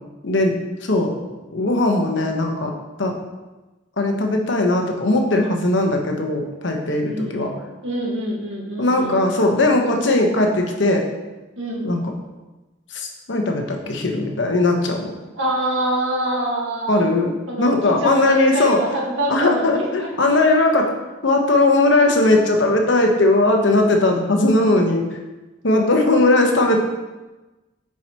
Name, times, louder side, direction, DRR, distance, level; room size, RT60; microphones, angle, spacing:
voice 1, 0.2-0.5 0.8-1.1 1.5-2.7 3.0-3.1 4.0-7.5 8.8-11.0 11.8-12.0 12.9-15.1 16.9-17.3 17.6-18.8 19.3-20.9 21.2-25.1 25.6-26.8, left 2 dB, 75° left, 2 dB, 1.0 m, -18 dB
voice 2, 7.0-7.5 7.8-9.2 11.6-11.9 15.3-17.0 17.5-20.6, right 1 dB, 90° right, -2 dB, 1.6 m, -25 dB
8.8 x 4.7 x 2.9 m, 1.1 s
head